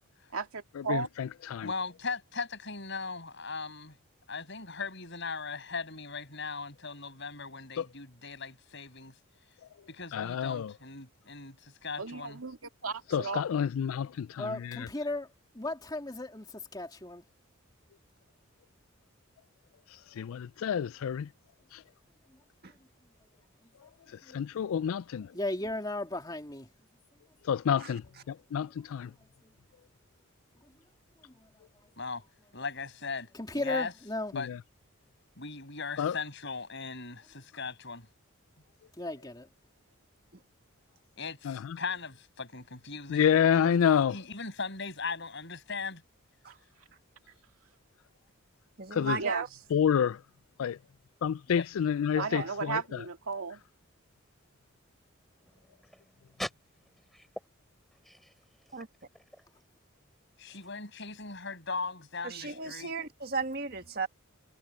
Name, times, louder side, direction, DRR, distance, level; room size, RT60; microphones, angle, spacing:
voice 1, 0.3-1.1 12.0-12.6 12.8-13.4 49.2-49.4 52.2-53.6, right 4 dB, 85° right, 2.1 m, -34 dB
voice 2, 0.9-1.7 10.1-10.7 13.1-14.3 20.2-21.3 24.3-25.3 27.5-28.0 28.5-29.1 36.0-36.1 41.5-41.6 43.1-44.1 49.0-49.2 49.7-50.2 50.6-50.8 51.2-52.8, left 8 dB, 75° left, 0.3 m, -28 dB
voice 3, 1.6-4.0 4.3-9.1 9.9-12.4 32.0-32.2 32.5-33.9 34.3-34.5 35.4-38.1 41.2-43.8 44.1-46.0 51.5-51.7 60.4-62.9, left 4 dB, 55° left, 7.4 m, -38 dB
voice 4, 14.4-17.2 24.3-24.5 25.3-26.7 29.0-29.1 31.2-31.5 33.3-34.3 39.0-39.5, left 2 dB, 20° left, 2.6 m, -36 dB
voice 5, 27.8-28.2 40.3-40.4 46.4-46.6 48.8-49.5 52.1-52.5 58.7-58.9 62.2-64.1, right 4 dB, 45° right, 1.7 m, -36 dB
voice 6, 55.4-56.5 57.0-57.3 57.9-58.8 59.1-59.5 60.5-60.6, equal, ahead, 7.1 m, -44 dB
head